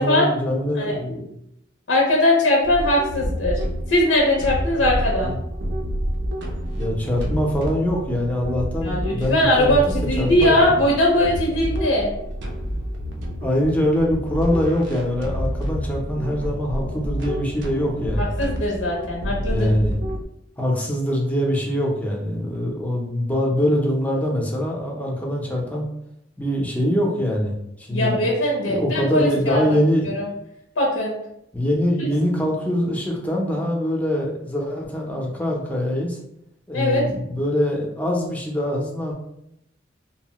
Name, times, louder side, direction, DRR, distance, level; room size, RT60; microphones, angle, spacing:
voice 1, 0.0-1.3 5.2-5.4 6.8-10.6 13.4-18.4 19.5-20.0 20.6-25.9 26.4-28.1 28.7-30.2 31.5-36.2 36.7-39.1, equal, 10° left, -1 dB, 0.5 m, -23 dB
voice 2, 1.9-3.6 3.9-5.3 8.8-12.1 18.2-19.7 27.9-29.6 30.1-30.3 30.8-31.2 32.0-32.1 36.7-37.0, left 1 dB, 90° left, -2 dB, 0.6 m, -20 dB
sound 1, 2.6-20.2, equal, 65° right, 0.5 m, -28 dB
2.8 x 2.1 x 2.9 m, 0.77 s
head